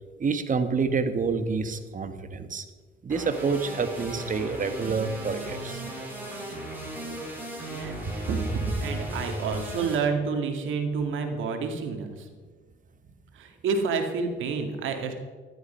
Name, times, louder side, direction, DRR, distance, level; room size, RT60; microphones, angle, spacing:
voice 1, 0.2-2.6 3.0-5.8, right 5 dB, 40° right, 9 dB, 1.4 m, -28 dB
sound 1, 3.1-10.0, right 1 dB, 10° right, 5.5 m, -36 dB
voice 2, 7.6-8.0 8.3-12.3 13.3-15.1, right 5 dB, 80° right, 5 dB, 2.2 m, -29 dB
13.5 x 11.5 x 5.7 m, 1.5 s
cardioid pair, 90°, 20 cm